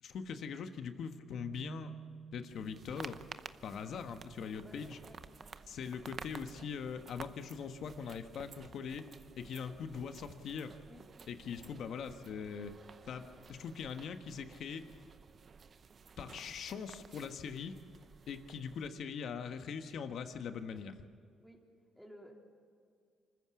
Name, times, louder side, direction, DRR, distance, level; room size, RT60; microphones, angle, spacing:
voice 1, 0.0-1.9 2.3-3.2 3.6-5.0 5.7-9.0 9.3-10.7 11.3-12.7 13.1-13.2 13.5-14.8 16.2-17.8 18.3-21.0, left 6 dB, 65° left, 8 dB, 1.4 m, -42 dB
Keyboard (musical), 1.3-3.2, right 7 dB, 85° right, 3.1 m, -51 dB
sound 1, 2.5-18.9, right 5 dB, 45° right, 0.8 m, -53 dB
voice 2, 4.6-5.5 10.9-11.0 21.4-21.6 22.0-22.4, equal, ahead, 0 dB, 3.6 m, -56 dB
26.0 x 14.5 x 7.1 m, 2.3 s
cardioid pair, 90°, 0 cm